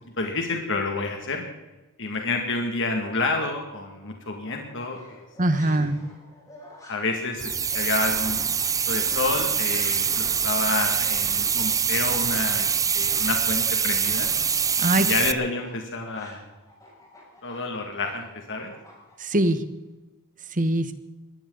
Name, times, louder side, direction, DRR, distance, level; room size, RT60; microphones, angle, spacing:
voice 1, 0.2-1.5 2.0-5.3 5.6-5.9 6.9-8.6 8.9-12.7 12.9-14.3 15.0-16.4 17.4-18.7, left 3 dB, 60° left, 2 dB, 2.3 m, -29 dB
sound 1, 4.4-14.1 14.4-19.4, left 1 dB, 15° left, 7.1 m, -49 dB
voice 2, 5.4-5.9 14.8-15.1 19.2-19.6 20.5-20.9, right 1 dB, 35° right, 11 dB, 1.3 m, -22 dB
sound 2, 7.4-15.3, right 7 dB, 15° right, 0.4 m, -24 dB
21.5 x 16.0 x 4.0 m, 1.1 s
head